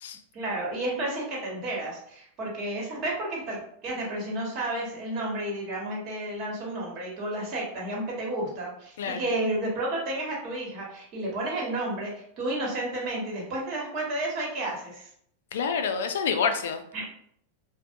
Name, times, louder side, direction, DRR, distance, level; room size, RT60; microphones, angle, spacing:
voice 1, 0.3-15.1 16.9-17.1, right 1 dB, 45° right, -3 dB, 1.1 m, -31 dB
voice 2, 15.5-16.8, left 6 dB, 80° left, 7 dB, 0.3 m, -27 dB
2.5 x 2.1 x 2.5 m, 0.68 s
hypercardioid pair, 125°, 0 cm